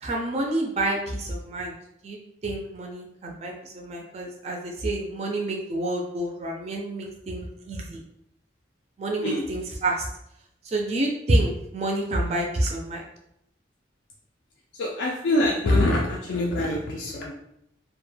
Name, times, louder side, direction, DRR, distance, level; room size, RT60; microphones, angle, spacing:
voice 1, 0.0-8.0 9.0-10.1 10.6-13.0, right 1 dB, 35° right, 0 dB, 0.4 m, -28 dB
voice 2, 14.7-17.3, left 1 dB, 65° left, -3 dB, 0.4 m, -24 dB
2.1 x 2.1 x 3.1 m, 0.77 s
head